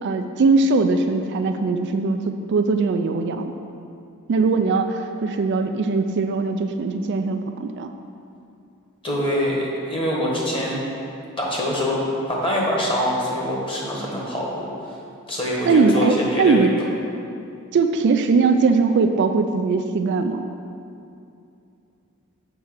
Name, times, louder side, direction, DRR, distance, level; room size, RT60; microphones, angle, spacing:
voice 1, 0.0-3.5 4.3-7.9 15.7-16.7 17.7-20.5, right 4 dB, 50° right, 7 dB, 0.3 m, -20 dB
voice 2, 9.0-10.8 11.4-12.0 12.3-14.7 15.3-16.7, left 1 dB, 25° left, -3 dB, 1.4 m, -24 dB
7.3 x 4.6 x 6.3 m, 2.6 s
head